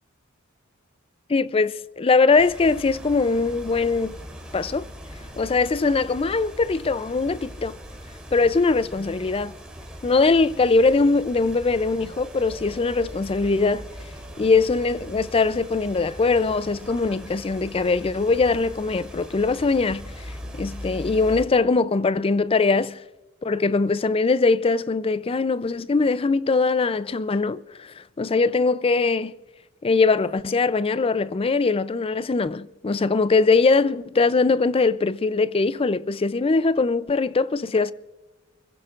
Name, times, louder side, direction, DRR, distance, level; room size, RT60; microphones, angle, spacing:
voice 1, 1.3-4.2 4.5-4.8 5.4-7.8 8.3-9.5 10.0-13.9 14.4-20.0 20.5-23.0 23.4-29.3 29.8-37.9, left 4 dB, 25° left, 0.4 m, -21 dB
sound 1, 2.4-21.5, equal, 5° right, 3.2 m, -40 dB
28.0 x 15.5 x 2.5 m
head